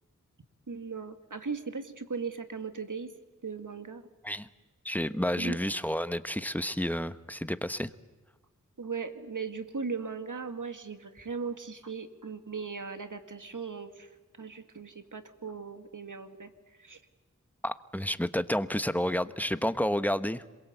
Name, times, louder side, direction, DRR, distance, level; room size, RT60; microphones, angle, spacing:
voice 1, 0.7-3.1 3.4-4.0 5.4-5.6 8.8-14.1 14.4-16.5 16.8-17.0, right 5 dB, 70° right, 7 dB, 2.2 m, -38 dB
voice 2, 4.8-7.9 17.6-20.4, equal, 5° left, 12 dB, 1.2 m, -30 dB
26.5 x 22.5 x 8.2 m, 1.3 s
wide cardioid pair, 40°, 32 cm